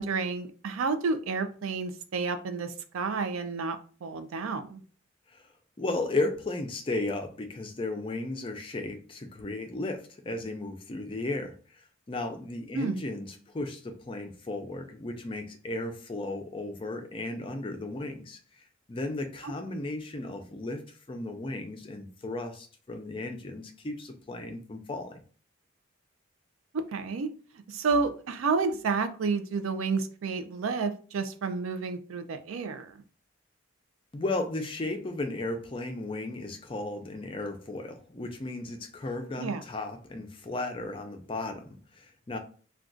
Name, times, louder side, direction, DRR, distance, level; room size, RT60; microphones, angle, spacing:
voice 1, 0.0-4.8 12.7-13.0 26.7-27.3 27.7-32.9 39.4-39.6, right 4 dB, 90° right, 9 dB, 0.4 m, -30 dB
voice 2, 5.8-11.5 12.1-18.4 18.9-20.8 21.1-25.2 34.1-42.4, left 2 dB, 25° left, 5 dB, 0.4 m, -35 dB
2.4 x 2.3 x 3.7 m, 0.40 s
head